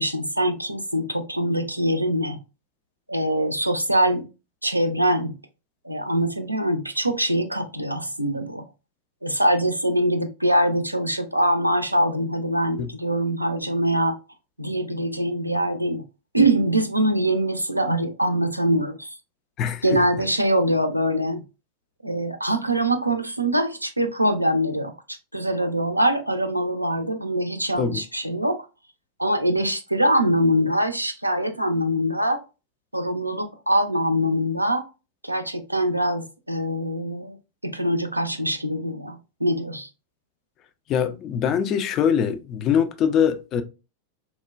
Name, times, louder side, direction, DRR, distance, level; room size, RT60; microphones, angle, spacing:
voice 1, 0.0-2.4 3.1-4.3 4.6-5.3 5.8-8.6 9.2-14.2 14.6-16.0 16.3-19.2 19.8-21.4 22.0-24.9 25.3-28.6 29.2-32.4 32.9-34.9 35.2-37.4 37.6-39.9, right 1 dB, 85° right, 0.4 m, -23 dB
voice 2, 19.6-20.0 27.8-28.0 40.9-43.6, left 8 dB, 35° left, 0.3 m, -23 dB
3.0 x 2.1 x 2.3 m
figure-of-eight pair, 90°, 0 cm